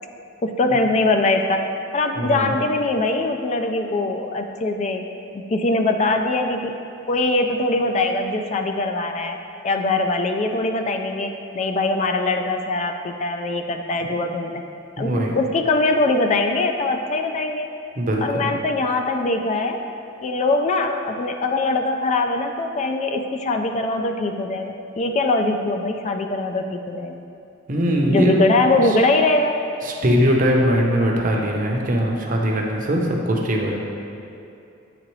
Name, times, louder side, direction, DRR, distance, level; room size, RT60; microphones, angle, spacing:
voice 1, 0.4-1.6 1.9-5.0 5.5-6.8 7.1-9.4 9.6-14.5 15.0-17.7 18.2-19.8 20.2-27.2 28.1-29.6, left 2 dB, 35° left, 5 dB, 0.3 m, -22 dB
voice 2, 2.2-2.5 15.0-15.4 18.0-18.5 27.7-28.4 29.8-33.8, equal, 45° right, 0 dB, 0.7 m, -21 dB
8.9 x 3.7 x 3.1 m, 2.6 s
head